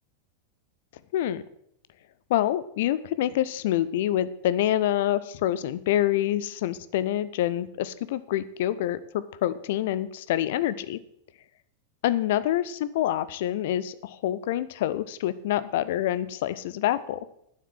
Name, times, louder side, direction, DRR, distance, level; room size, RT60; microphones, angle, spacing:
voice 1, 1.1-1.4 2.3-11.0 12.0-17.2, left 12 dB, 55° left, 16 dB, 0.6 m, -26 dB
9.3 x 7.5 x 7.3 m, 0.75 s
figure-of-eight pair, 90°, 0 cm